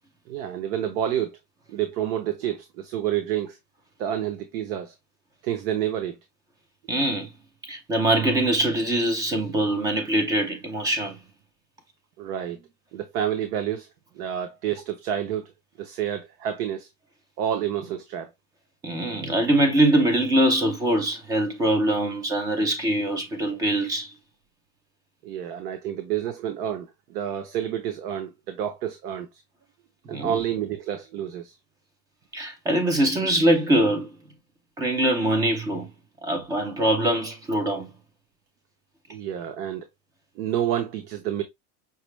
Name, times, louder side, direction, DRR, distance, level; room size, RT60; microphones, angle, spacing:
voice 1, 0.3-1.3 1.7-3.6 4.0-4.9 5.4-6.2 12.2-12.6 12.9-13.9 14.2-15.5 15.8-16.9 17.4-18.3 25.2-29.3 30.1-31.5 39.1-39.8 40.4-41.4, right 10 dB, 70° right, 0.8 m, -29 dB
voice 2, 6.9-7.3 7.7-11.2 18.8-24.1 30.0-30.4 32.3-34.1 34.8-35.9 36.2-37.9, right 1 dB, 10° right, 0.3 m, -23 dB
5.7 x 2.0 x 3.1 m
supercardioid pair, 140°, 47 cm